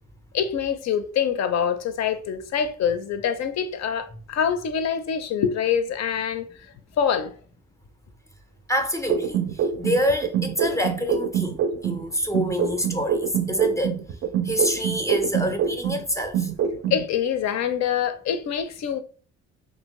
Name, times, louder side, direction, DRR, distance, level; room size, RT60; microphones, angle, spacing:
voice 1, 0.3-6.5 7.0-7.3 16.9-19.0, left 8 dB, 60° left, 0.5 m, -25 dB
voice 2, 8.7-9.4 9.8-14.0 14.4-16.5, equal, 10° left, 0.5 m, -26 dB
sound 1, 9.1-12.0 12.3-16.0 16.3-17.0, right 7 dB, 45° right, 0.4 m, -25 dB
2.8 x 2.7 x 3.0 m
cardioid pair, 90°, 30 cm